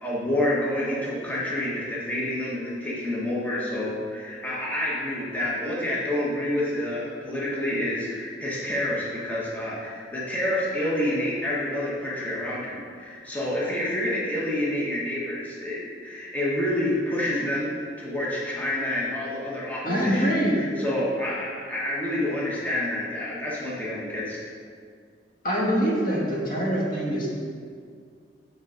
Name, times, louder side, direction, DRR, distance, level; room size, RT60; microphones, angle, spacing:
voice 1, 0.0-24.4, left 1 dB, 10° left, -7 dB, 1.2 m, -28 dB
voice 2, 19.8-20.6 25.4-27.3, equal, 50° left, -4 dB, 1.5 m, -24 dB
7.2 x 3.8 x 6.3 m, 2.1 s
head